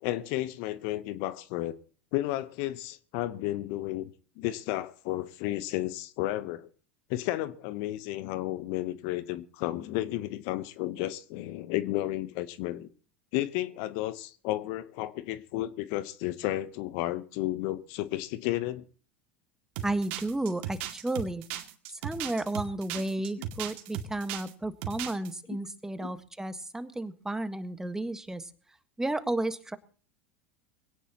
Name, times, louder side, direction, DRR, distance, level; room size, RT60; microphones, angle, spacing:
voice 1, 0.0-1.7 2.1-4.1 4.4-6.7 7.1-12.9 13.3-18.9 25.5-25.6 26.0-26.1, left 15 dB, 55° left, 1.0 m, -32 dB
voice 2, 19.8-21.4 21.9-28.5 29.0-29.8, right 2 dB, 10° right, 1.6 m, -33 dB
sound 1, 19.8-24.5 24.8-25.3, right 12 dB, 60° right, 2.4 m, -37 dB
22.5 x 17.5 x 3.0 m
figure-of-eight pair, 80°, 7 cm